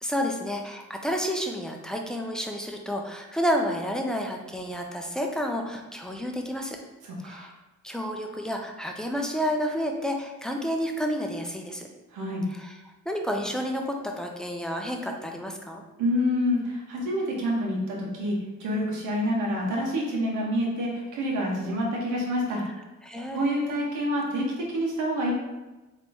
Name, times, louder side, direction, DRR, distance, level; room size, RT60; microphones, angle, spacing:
voice 1, 0.0-6.8 7.2-7.5 7.8-11.9 12.5-12.8 13.1-15.8 23.0-23.8, equal, ahead, 2 dB, 0.5 m, -30 dB
voice 2, 7.0-7.5 12.1-12.5 16.0-22.6 23.3-25.3, equal, 80° right, -2 dB, 1.2 m, -27 dB
3.9 x 3.0 x 3.4 m, 1.1 s
cardioid pair, 90°, 30 cm